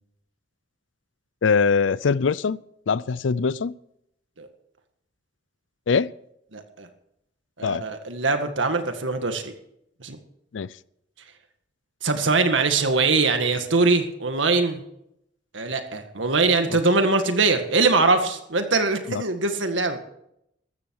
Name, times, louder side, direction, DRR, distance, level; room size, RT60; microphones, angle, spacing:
voice 1, 1.4-2.6 2.9-3.7 5.9-6.1 7.6-7.8 10.5-10.7 16.7-16.8, left 5 dB, 80° left, 0.5 m, -22 dB
voice 2, 6.5-6.9 7.6-9.5 10.0-10.2 12.0-14.8 15.5-20.0, right 3 dB, 80° right, 1.9 m, -22 dB
14.5 x 13.5 x 4.8 m
head